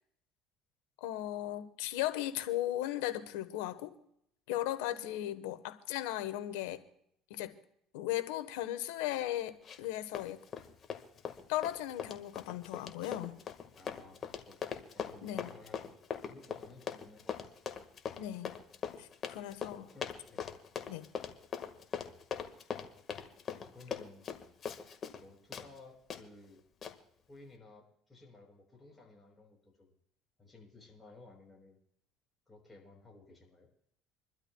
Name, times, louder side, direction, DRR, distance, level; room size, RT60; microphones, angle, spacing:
voice 1, 1.0-3.9 4.5-6.8 7.3-7.5 7.9-10.4 11.5-13.4 15.2-15.6 18.2-18.6 19.0-19.8 20.9-21.1, left 14 dB, 90° left, 12 dB, 1.1 m, -37 dB
Run, 9.6-9.9 10.1-25.2 25.5-25.7 26.1-26.2 26.8-26.9, left 7 dB, 40° left, 1.5 m, -41 dB
voice 2, 13.8-14.6 14.9-15.9 16.2-17.8 19.8-20.5 23.5-24.3 25.2-26.6 27.3-29.9 30.4-31.8 32.5-33.7, left 3 dB, 15° left, -1 dB, 6.1 m, -56 dB
27.5 x 12.5 x 2.3 m, 0.72 s
supercardioid pair, 100°, 0 cm